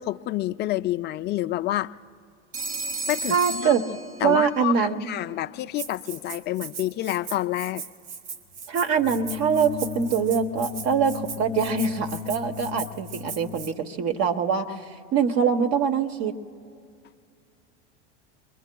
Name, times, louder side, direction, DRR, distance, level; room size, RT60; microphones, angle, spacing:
voice 1, 0.0-1.9 3.1-3.7 4.2-7.8, left 15 dB, 30° left, 10 dB, 0.4 m, -28 dB
Telephone, 2.5-4.6, right 3 dB, 25° right, 0.7 m, -33 dB
voice 2, 3.3-3.8 4.2-5.1 8.7-14.8 15.1-16.3, right 6 dB, 45° right, 6 dB, 1.2 m, -24 dB
Rattle (instrument), 5.8-13.7, right 6 dB, 75° right, 1.2 m, -39 dB
sound 1, 9.0-13.7, left 11 dB, 70° left, 0.7 m, -36 dB
27.0 x 22.0 x 2.3 m, 2.3 s
hypercardioid pair, 90°, 36 cm